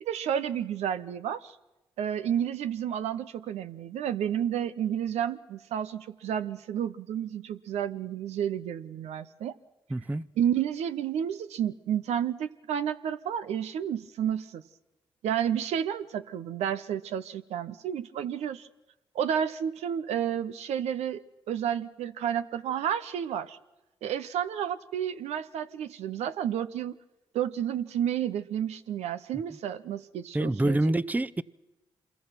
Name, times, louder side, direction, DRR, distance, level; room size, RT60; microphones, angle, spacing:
voice 1, 0.0-1.6 2.0-9.5 10.4-14.6 15.2-18.7 19.1-21.2 21.5-23.6 24.0-27.0 27.3-30.8, right 9 dB, 80° right, 0.8 m, -31 dB
voice 2, 9.9-10.3 30.3-31.4, right 1 dB, 15° right, 0.7 m, -26 dB
26.5 x 22.0 x 6.0 m
supercardioid pair, 50°, 11 cm